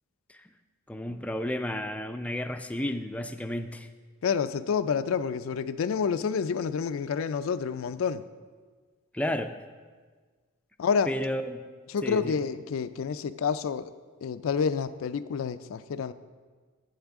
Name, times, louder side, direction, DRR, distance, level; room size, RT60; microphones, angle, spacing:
voice 1, 0.9-3.9 9.1-9.5 11.1-11.6 12.0-12.4, left 1 dB, 5° left, 7 dB, 0.3 m, -32 dB
voice 2, 4.2-8.2 10.8-11.1 11.9-13.9 14.2-16.1, left 6 dB, 90° left, 12 dB, 0.4 m, -28 dB
11.5 x 8.1 x 3.6 m, 1.5 s
head